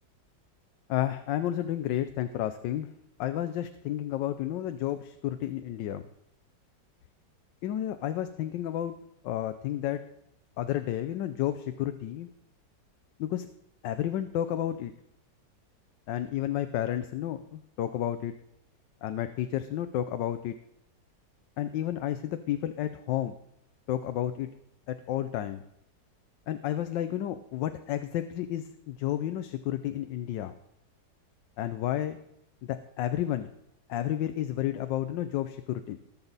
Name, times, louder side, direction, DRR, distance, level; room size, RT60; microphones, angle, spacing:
voice 1, 0.9-2.9 3.2-6.0 7.6-8.9 9.2-10.0 10.6-12.3 13.2-13.5 13.8-14.9 16.1-18.3 19.0-20.5 21.6-23.3 23.9-24.5 24.9-25.6 26.5-30.5 31.6-32.2 32.6-33.5 33.9-36.0, left 12 dB, 85° left, 10 dB, 1.3 m, -31 dB
19.5 x 7.2 x 4.0 m, 0.77 s
omnidirectional pair, 1.9 m